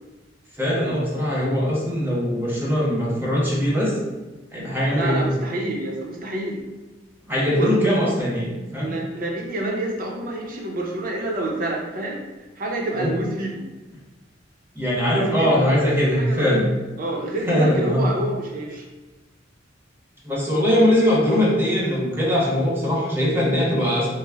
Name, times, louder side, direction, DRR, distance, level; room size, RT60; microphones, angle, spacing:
voice 1, 0.6-3.9 4.5-5.3 7.3-8.9 12.9-13.1 14.8-16.6 17.4-18.1 20.2-24.1, equal, 10° right, -5 dB, 0.7 m, -21 dB
voice 2, 4.9-6.6 7.6-7.7 8.2-8.3 8.8-12.2 12.6-13.6 15.4-15.6 16.0-16.6 17.0-18.9, right 1 dB, 50° right, 0 dB, 0.6 m, -28 dB
3.2 x 2.0 x 3.4 m, 1.1 s
head